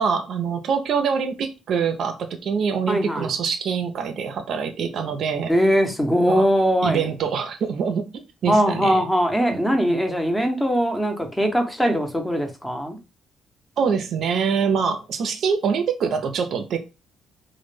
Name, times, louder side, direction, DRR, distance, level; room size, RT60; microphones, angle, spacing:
voice 1, 0.0-5.5 6.3-6.4 6.8-9.0 9.9-10.0 13.8-16.8, right 6 dB, 65° right, 0.4 m, -24 dB
voice 2, 2.9-3.3 5.5-7.0 8.5-13.0, equal, 10° left, 0.6 m, -21 dB
2.0 x 2.0 x 3.1 m
cardioid pair, 90°, 0 cm